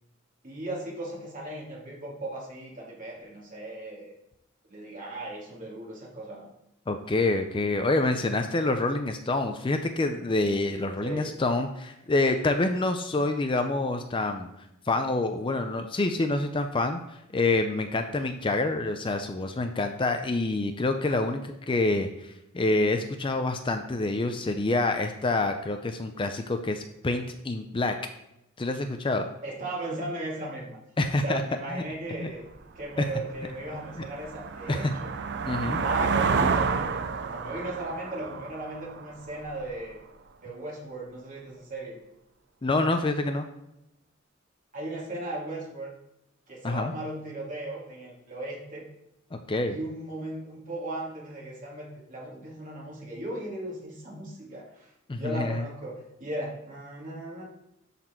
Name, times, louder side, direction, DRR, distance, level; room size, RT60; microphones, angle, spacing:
voice 1, 0.4-4.1 4.7-6.5 11.0-11.3 29.4-30.8 31.2-32.4 32.8-35.1 35.8-40.0 40.4-42.0 44.7-45.9 46.5-48.9 49.7-57.4, right 1 dB, 40° right, -3 dB, 2.5 m, -37 dB
voice 2, 6.9-14.5 14.9-28.0 28.6-29.3 31.0-31.4 31.7-31.8 32.1-32.3 34.7-34.9 35.4-35.8 42.6-43.5 46.6-46.9 49.3-49.8 55.1-55.6, left 2 dB, 25° left, 6 dB, 0.5 m, -27 dB
sound 1, 32.5-32.6 33.1-39.7, right 5 dB, 55° right, 0.5 m, -30 dB
12.5 x 4.2 x 4.4 m, 0.85 s
head